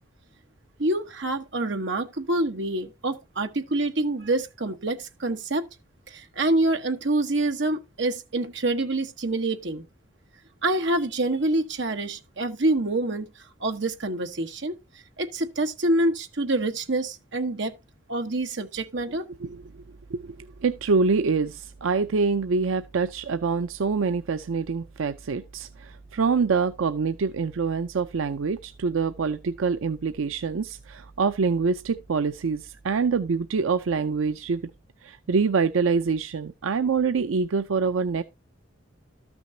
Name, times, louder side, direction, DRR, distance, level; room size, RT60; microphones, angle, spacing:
voice 1, 0.8-5.6 6.1-9.8 10.6-13.3 13.6-14.7 15.2-17.7 18.1-19.3, right 2 dB, 60° right, 1.2 m, -26 dB
voice 2, 19.4-19.8 20.1-34.7 35.0-38.2, right 5 dB, 90° right, 0.5 m, -25 dB
13.0 x 6.2 x 2.7 m
head